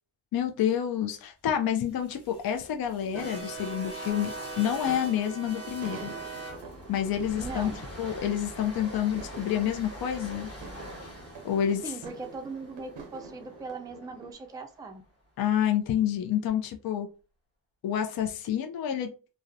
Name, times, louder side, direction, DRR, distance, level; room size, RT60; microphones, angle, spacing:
voice 1, 0.3-6.1 6.9-7.7 8.0-10.5 11.4-11.8 15.4-17.1 17.8-19.1, left 10 dB, 55° left, 4 dB, 0.5 m, -28 dB
sound 1, 1.9-14.1, right 2 dB, 35° left, 1.1 m, -42 dB
sound 2, 3.0-14.3, right 4 dB, 85° right, 0.6 m, -47 dB
voice 2, 7.3-7.8 11.8-15.0, right 3 dB, 10° right, 5 dB, 0.4 m, -39 dB
2.3 x 2.1 x 2.6 m, 0.34 s
cardioid pair, 55°, 44 cm